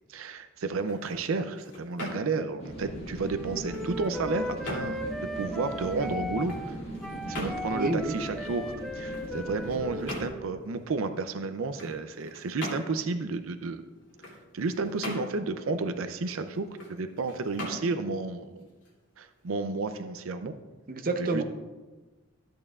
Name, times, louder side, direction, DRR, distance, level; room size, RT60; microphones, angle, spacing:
voice 1, 0.1-5.0 5.4-6.8 7.3-13.8 14.5-18.7 19.2-20.5 21.2-21.4, right 3 dB, 90° right, 9 dB, 0.5 m, -32 dB
sound 1, 0.6-19.5, left 1 dB, 65° left, 2.8 m, -43 dB
sound 2, 2.6-10.2, right 1 dB, 30° left, 1.6 m, -40 dB
Wind instrument woodwind instrument, 3.2-10.6, left 1 dB, ahead, 0.5 m, -37 dB
voice 2, 7.7-8.1 20.9-21.4, right 2 dB, 45° right, 5 dB, 0.7 m, -29 dB
13.0 x 8.6 x 2.4 m, 1.2 s
head